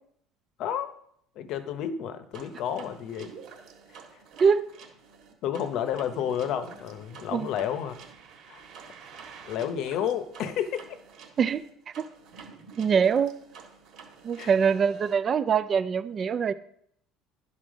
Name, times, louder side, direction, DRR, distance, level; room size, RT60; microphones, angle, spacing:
voice 1, 0.6-0.9 1.4-3.3 5.4-8.0 8.5-8.6 9.4-10.8 14.4-14.5, left 9 dB, 50° left, 10 dB, 0.8 m, -31 dB
sound 1, 2.3-15.1, right 6 dB, 50° right, 1.6 m, -48 dB
voice 2, 4.4-4.7 7.3-7.5 11.4-11.6 12.0-12.1 12.8-13.4 14.2-16.5, right 6 dB, 30° right, 13 dB, 0.3 m, -23 dB
10.5 x 4.2 x 6.2 m, 0.70 s
cardioid pair, 155°, 0 cm